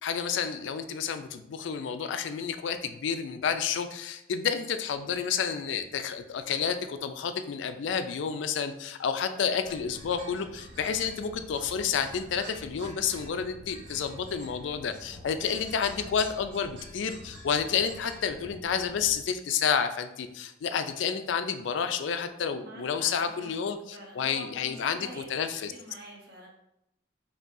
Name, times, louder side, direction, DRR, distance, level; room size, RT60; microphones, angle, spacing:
voice 1, 0.0-25.7, left 7 dB, 75° left, 9 dB, 0.3 m, -30 dB
sound 1, 9.6-19.2, equal, 85° right, 1.3 m, -47 dB
voice 2, 22.6-26.5, equal, 55° right, -1 dB, 1.0 m, -47 dB
5.3 x 2.7 x 2.6 m, 0.84 s
head